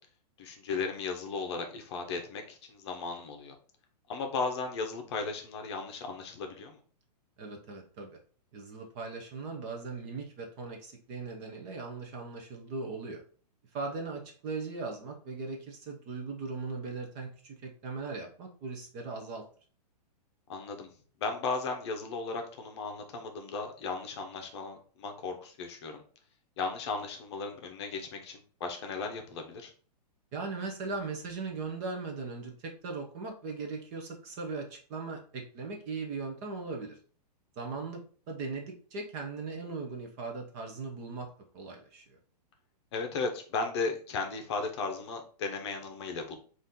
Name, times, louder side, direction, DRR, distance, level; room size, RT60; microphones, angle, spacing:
voice 1, 0.4-3.5 4.1-6.8 20.5-20.9 21.2-26.0 26.6-29.7 42.9-46.4, left 4 dB, 40° left, 4 dB, 0.7 m, -36 dB
voice 2, 7.4-8.2 8.5-13.2 13.7-19.4 30.3-37.0 37.6-38.0 38.3-42.2, right 4 dB, 25° right, 2 dB, 0.5 m, -39 dB
4.1 x 2.5 x 3.6 m, 0.43 s
hypercardioid pair, 160°, 21 cm